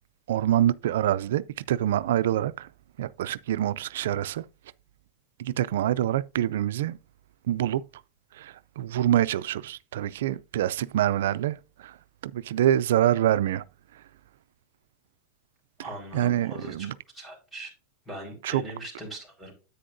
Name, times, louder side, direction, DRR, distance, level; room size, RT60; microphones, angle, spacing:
voice 1, 0.3-2.7 3.0-4.4 5.4-7.0 7.5-7.8 8.3-12.0 12.2-13.6 16.1-16.9 18.4-18.6, right 12 dB, 85° right, 0.3 m, -26 dB
voice 2, 15.8-16.9 17.1-17.7 18.1-19.5, right 1 dB, ahead, 4.5 m, -40 dB
10.0 x 8.4 x 2.6 m
supercardioid pair, 135°, 0 cm